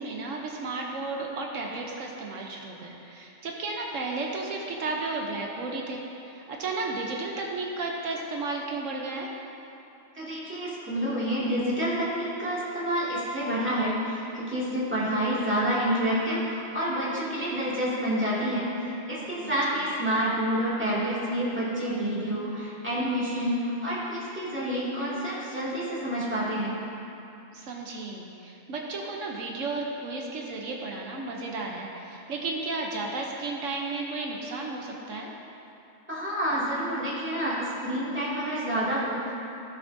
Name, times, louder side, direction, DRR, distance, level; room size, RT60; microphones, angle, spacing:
voice 1, 0.0-9.3 19.2-19.5 27.5-35.3, right 3 dB, 80° right, -1 dB, 1.2 m, -33 dB
voice 2, 10.1-26.8 36.1-39.3, equal, 10° right, -9 dB, 2.2 m, -28 dB
15.5 x 7.0 x 2.7 m, 2.8 s
omnidirectional pair, 1.3 m